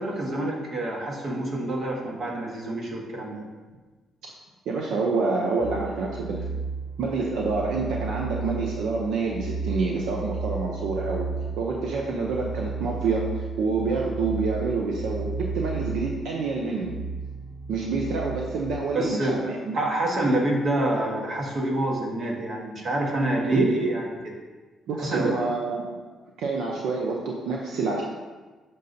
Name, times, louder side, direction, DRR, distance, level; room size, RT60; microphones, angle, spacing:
voice 1, 0.0-3.4 18.9-19.4 19.7-24.3 25.0-25.4, right 1 dB, 55° right, -1 dB, 1.3 m, -27 dB
voice 2, 4.7-6.4 7.0-11.3 11.6-16.9 17.7-19.7 23.5-23.7 24.9-25.9 26.4-28.0, right 4 dB, 85° right, -1 dB, 0.6 m, -27 dB
sound 1, 5.6-18.8, right 4 dB, 15° right, 0.7 m, -34 dB
6.5 x 5.4 x 2.7 m, 1.3 s
cardioid pair, 90°, 0 cm